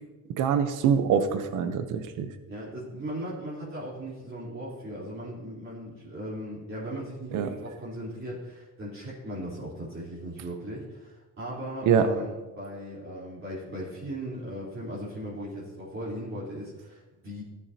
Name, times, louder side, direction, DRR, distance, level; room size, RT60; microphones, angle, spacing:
voice 1, 0.4-2.3 7.3-7.5 11.9-12.1, right 7 dB, 90° right, 9 dB, 0.9 m, -24 dB
voice 2, 2.5-17.4, equal, 40° right, -8 dB, 3.8 m, -38 dB
13.5 x 8.9 x 2.9 m, 1.2 s
cardioid pair, 90°, 30 cm